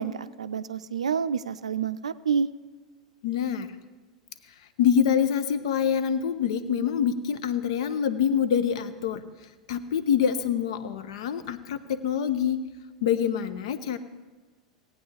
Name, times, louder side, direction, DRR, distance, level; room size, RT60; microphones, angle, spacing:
voice 1, 0.0-2.5, right 6 dB, 75° right, 13 dB, 0.4 m, -28 dB
voice 2, 3.2-3.7 4.8-9.2 9.7-12.6 13.0-14.0, left 8 dB, 60° left, 12 dB, 0.7 m, -25 dB
18.0 x 9.0 x 3.3 m, 1.3 s
figure-of-eight pair, 85°, 4 cm